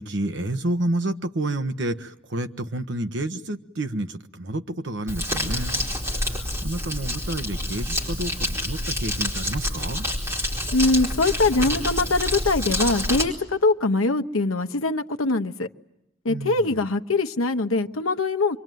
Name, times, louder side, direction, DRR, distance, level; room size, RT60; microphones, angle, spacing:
voice 1, 0.0-10.1 16.3-16.8, right 1 dB, 55° right, 7 dB, 1.2 m, -30 dB
Crumpling crinkling, 5.1-13.2, left 1 dB, 15° right, 4.5 m, -27 dB
voice 2, 10.7-15.7 16.2-18.6, left 3 dB, 85° left, 7 dB, 1.0 m, -22 dB
27.0 x 23.5 x 9.3 m, 0.83 s
head